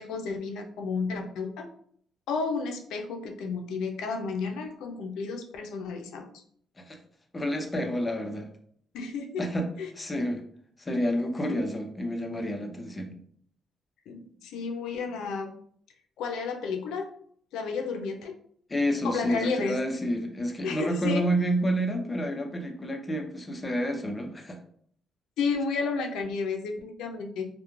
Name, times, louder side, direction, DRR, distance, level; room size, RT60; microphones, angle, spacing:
voice 1, 0.0-1.7 2.3-6.4 8.9-9.4 9.8-9.9 14.1-15.5 16.2-17.1 17.5-18.3 19.0-19.8 20.6-21.2 25.4-27.5, left 4 dB, 85° left, 4 dB, 0.4 m, -32 dB
voice 2, 7.3-8.5 9.4-9.7 9.9-10.4 10.8-13.1 18.7-24.6, equal, 20° left, 4 dB, 0.5 m, -29 dB
2.3 x 2.1 x 3.0 m, 0.62 s
cardioid pair, 90°, 0 cm